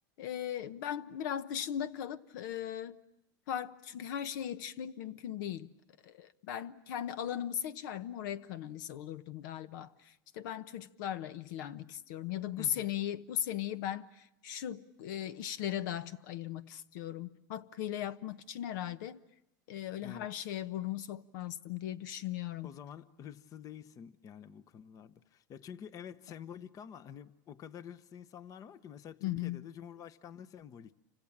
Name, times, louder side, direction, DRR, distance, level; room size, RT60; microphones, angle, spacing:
voice 1, 0.2-3.0 3.5-5.7 6.0-19.2 19.7-22.7 29.2-29.6, left 11 dB, 70° left, 1.0 m, -38 dB
voice 2, 12.6-12.9 20.0-20.3 22.6-31.0, left 8 dB, 35° left, 1.0 m, -48 dB
29.0 x 26.0 x 7.3 m
supercardioid pair, 130°, 11 cm